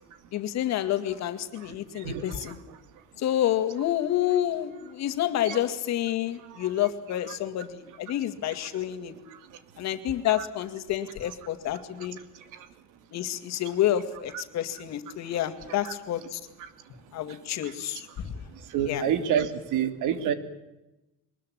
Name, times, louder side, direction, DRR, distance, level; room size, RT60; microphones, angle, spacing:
voice 1, 0.3-2.6 3.2-9.1 9.8-12.2 13.1-16.4 17.1-18.3 18.9-19.0, left 12 dB, 60° left, 9 dB, 2.2 m, -29 dB
voice 2, 2.0-2.5 5.4-5.6 7.3-7.4 10.4-10.5 15.8-15.9 18.7-20.3, right 8 dB, 75° right, 10 dB, 2.9 m, -28 dB
22.5 x 20.5 x 8.8 m, 0.97 s
cardioid pair, 170°, 31 cm